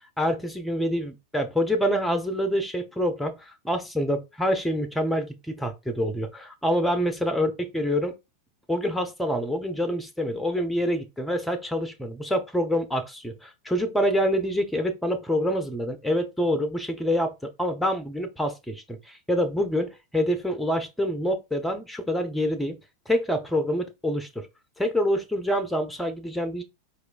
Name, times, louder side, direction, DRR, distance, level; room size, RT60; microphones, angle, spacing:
voice 1, 0.2-8.1 8.7-17.3 17.6-22.8 23.1-24.5 24.8-26.6, equal, ahead, 0.6 m, -26 dB
4.3 x 2.3 x 2.4 m
figure-of-eight pair, 90°, 0 cm